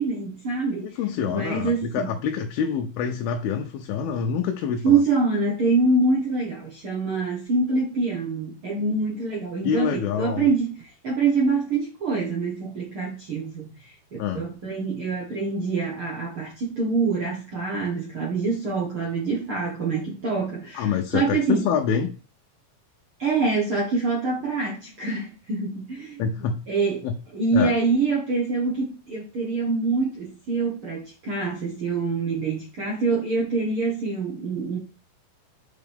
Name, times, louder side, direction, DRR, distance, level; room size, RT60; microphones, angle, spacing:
voice 1, 0.0-0.9 1.3-2.1 4.8-13.9 14.3-21.7 23.2-27.0 27.3-34.8, right 3 dB, 55° right, -3 dB, 1.6 m, -25 dB
voice 2, 0.8-5.0 9.6-10.5 14.2-14.4 20.7-22.1 26.2-26.6 27.0-27.1 27.5-27.7, left 7 dB, 80° left, 3 dB, 2.6 m, -26 dB
7.6 x 4.8 x 3.5 m, 0.35 s
omnidirectional pair, 4.4 m